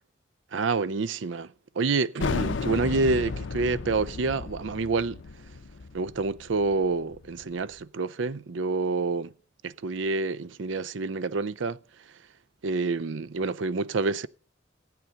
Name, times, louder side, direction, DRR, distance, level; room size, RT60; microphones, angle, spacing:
voice 1, 0.5-1.5 1.8-5.2 5.9-9.3 9.6-11.8 12.6-14.3, right 3 dB, 85° right, 0.5 m, -28 dB
sound 1, 2.2-7.5, left 4 dB, 85° left, 0.6 m, -33 dB
15.5 x 9.0 x 5.7 m
head